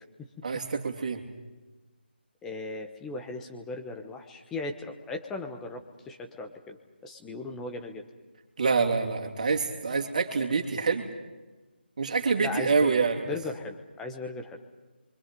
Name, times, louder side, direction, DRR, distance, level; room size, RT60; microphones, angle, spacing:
voice 1, 0.4-1.2 8.6-11.1 12.0-13.3, right 4 dB, 45° right, 3 dB, 2.8 m, -26 dB
voice 2, 2.4-8.0 12.4-12.9 13.3-14.6, left 3 dB, 5° left, 4 dB, 1.1 m, -37 dB
29.5 x 24.5 x 5.4 m, 1.2 s
figure-of-eight pair, 170°, 6 cm